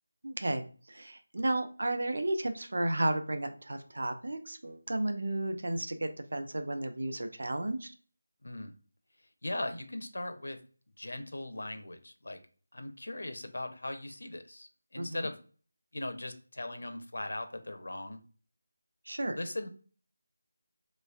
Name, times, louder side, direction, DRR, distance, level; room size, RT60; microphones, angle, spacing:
voice 1, 0.2-7.9 15.0-15.3 19.1-19.4, right 1 dB, 60° right, 8 dB, 0.5 m, -33 dB
voice 2, 8.4-8.7 9.4-10.6 11.0-12.4 12.7-15.4 15.9-18.2 19.3-19.7, left 1 dB, 75° left, 7 dB, 0.6 m, -39 dB
3.3 x 3.1 x 2.3 m, 0.39 s
figure-of-eight pair, 180°, 0 cm